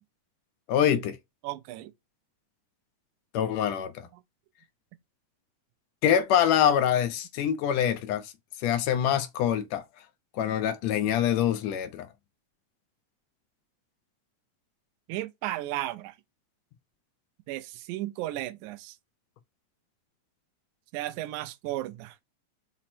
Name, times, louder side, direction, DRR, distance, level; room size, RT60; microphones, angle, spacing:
voice 1, 0.7-1.2 3.3-4.1 6.0-8.3 8.6-9.8 10.3-12.1, left 9 dB, 80° left, 1.6 m, -25 dB
voice 2, 1.4-1.9 15.1-16.1 17.5-19.0 20.9-22.1, right 15 dB, 85° right, 2.0 m, -34 dB
5.9 x 2.0 x 4.2 m
omnidirectional pair, 3.4 m